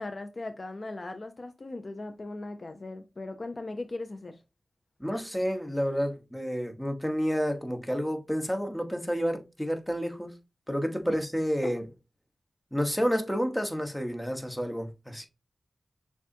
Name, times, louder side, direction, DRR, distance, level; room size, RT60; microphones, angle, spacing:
voice 1, 0.0-4.4 11.1-11.2 11.6-11.7, left 2 dB, 50° left, 0.6 m, -38 dB
voice 2, 5.0-10.3 10.7-11.8 12.7-15.3, equal, 5° left, 1.2 m, -30 dB
6.7 x 2.4 x 2.7 m
cardioid pair, 45°, 0 cm